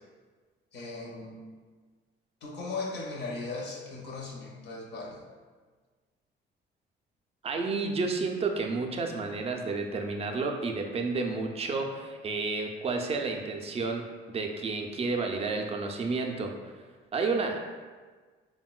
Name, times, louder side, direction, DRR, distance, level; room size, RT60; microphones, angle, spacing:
voice 1, 0.7-1.4 2.4-5.2, left 3 dB, 60° left, -1 dB, 0.6 m, -38 dB
voice 2, 7.4-16.5 17.1-17.6, right 3 dB, 30° right, 3 dB, 0.4 m, -31 dB
3.6 x 2.1 x 2.3 m, 1.4 s
cardioid pair, 90°, 20 cm